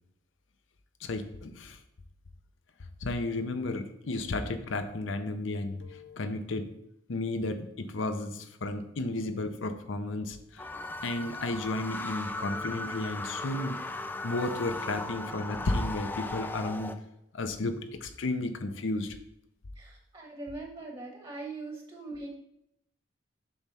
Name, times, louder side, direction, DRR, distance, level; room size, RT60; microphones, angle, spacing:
voice 1, 1.0-1.8 3.0-6.7 7.1-10.7 11.0-13.8 14.2-16.9 17.3-19.2, left 2 dB, 75° left, 8 dB, 0.7 m, -33 dB
sound 1, 10.6-17.0, left 2 dB, 10° left, 0.3 m, -37 dB
voice 2, 19.8-22.4, right 2 dB, 30° right, -1 dB, 1.2 m, -41 dB
7.0 x 3.1 x 5.6 m, 0.80 s
head